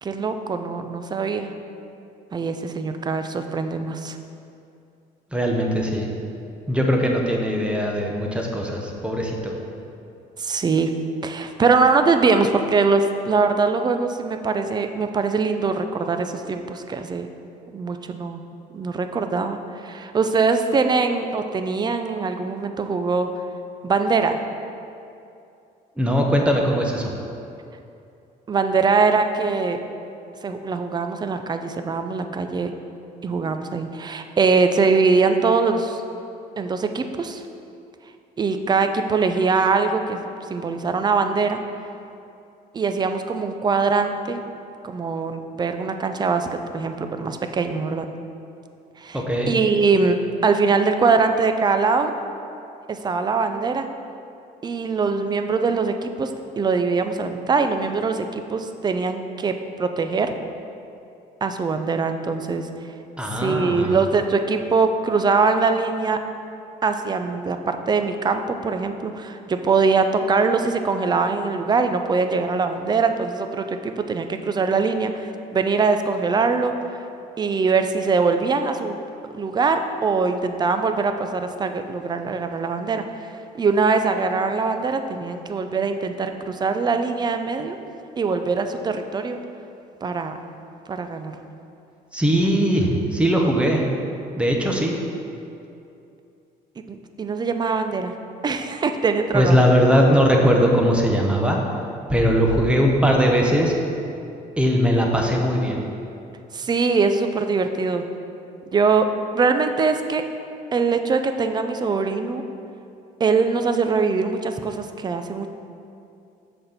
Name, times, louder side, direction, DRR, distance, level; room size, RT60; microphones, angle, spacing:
voice 1, 0.0-1.5 2.3-4.2 10.4-10.9 11.2-17.3 17.7-18.4 18.7-23.3 23.8-24.4 28.5-29.8 30.4-32.7 33.2-36.0 36.6-37.4 38.4-40.2 40.5-41.6 42.7-44.4 44.8-46.5 46.7-48.1 49.0-50.2 50.4-52.1 52.9-53.9 54.6-56.3 56.6-60.3 61.4-62.7 63.3-66.2 66.8-76.7 77.4-79.0 79.3-83.0 83.5-87.8 88.2-89.4 90.0-90.3 90.9-91.4 96.9-98.1 98.4-99.7 106.5-108.0 108.7-109.1 109.3-110.2 110.7-112.4 113.2-115.5, right 4 dB, 25° right, 7 dB, 0.5 m, -22 dB
voice 2, 5.3-6.1 6.7-9.6 26.0-27.1 49.1-49.5 63.2-64.0 92.1-93.8 94.4-95.0 99.3-101.6 102.1-103.7 104.6-105.8, equal, 5° right, 0 dB, 1.0 m, -20 dB
6.4 x 4.4 x 6.6 m, 2.6 s
cardioid pair, 110°, 17 cm